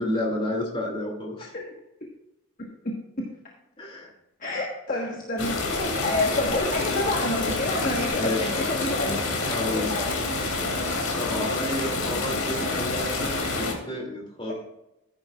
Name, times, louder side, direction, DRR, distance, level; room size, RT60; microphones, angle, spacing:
voice 1, 0.0-1.5 3.8-4.1 8.2-8.5 9.5-9.9 11.2-14.5, left 1 dB, 25° left, -1 dB, 2.6 m, -31 dB
voice 2, 2.8-3.3 4.4-5.5 5.8-10.1, left 2 dB, 40° left, -1 dB, 1.3 m, -29 dB
sound 1, 5.4-13.7, left 3 dB, 80° left, 2.6 m, -28 dB
14.5 x 9.6 x 2.4 m, 0.89 s
head